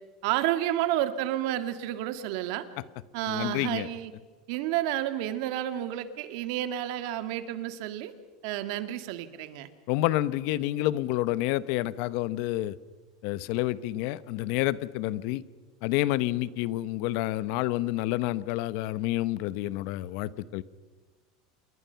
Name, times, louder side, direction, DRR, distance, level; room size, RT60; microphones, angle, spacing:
voice 1, 0.2-2.7 3.1-4.1 4.5-8.1 8.4-9.7, right 13 dB, 65° right, 10 dB, 2.0 m, -30 dB
voice 2, 3.3-3.9 9.9-12.7 13.2-15.4 15.8-20.6, left 16 dB, 60° left, 17 dB, 0.9 m, -29 dB
28.0 x 22.5 x 5.8 m, 1.4 s
supercardioid pair, 140°, 3 cm